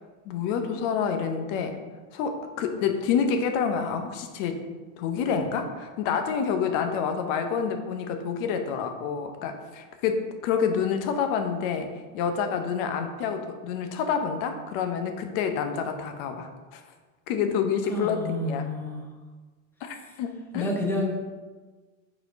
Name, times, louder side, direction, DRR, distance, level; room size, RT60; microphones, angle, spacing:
voice 1, 0.3-1.8 2.1-4.7 5.0-16.8 17.3-18.7 19.8-20.7, left 6 dB, 45° left, 6 dB, 0.8 m, -28 dB
voice 2, 17.9-19.0 20.5-21.3, left 1 dB, 5° left, 0 dB, 1.0 m, -29 dB
4.7 x 4.3 x 5.1 m, 1.3 s
supercardioid pair, 130°, 40 cm